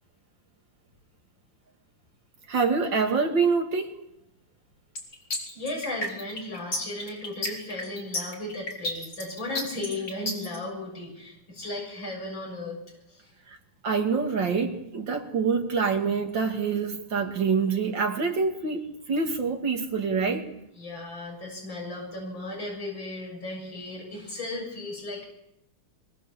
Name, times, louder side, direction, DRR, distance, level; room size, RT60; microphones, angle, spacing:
voice 1, 2.5-3.9 13.5-13.6 13.8-20.5, right 5 dB, 60° right, 3 dB, 3.2 m, -26 dB
sound 1, 5.0-10.6, left 1 dB, 45° left, 4.8 m, -32 dB
voice 2, 5.5-12.8 13.1-13.3 20.7-25.2, left 2 dB, 65° left, -1 dB, 8.1 m, -35 dB
24.0 x 24.0 x 7.1 m, 0.81 s
omnidirectional pair, 2.3 m